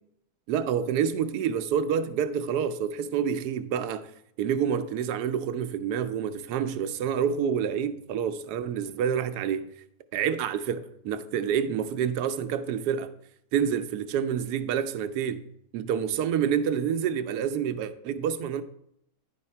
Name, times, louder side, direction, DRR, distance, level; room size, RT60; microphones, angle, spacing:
voice 1, 0.5-4.1 4.4-9.7 10.1-13.1 13.5-15.4 15.7-18.6, right 8 dB, 90° right, 1.1 m, -28 dB
10.0 x 4.9 x 4.3 m
omnidirectional pair, 1.6 m